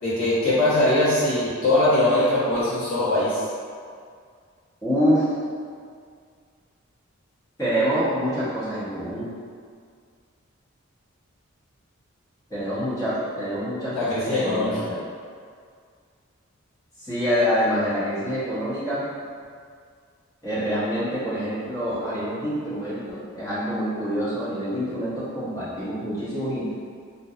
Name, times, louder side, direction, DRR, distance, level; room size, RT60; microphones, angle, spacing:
voice 1, 0.0-3.4 13.9-14.8, left 1 dB, 70° left, -13 dB, 1.3 m, -21 dB
voice 2, 4.8-5.3 7.6-9.3 12.5-15.0 17.0-19.0 20.4-26.7, equal, 15° left, -13 dB, 0.9 m, -26 dB
2.7 x 2.2 x 2.4 m, 2.1 s
head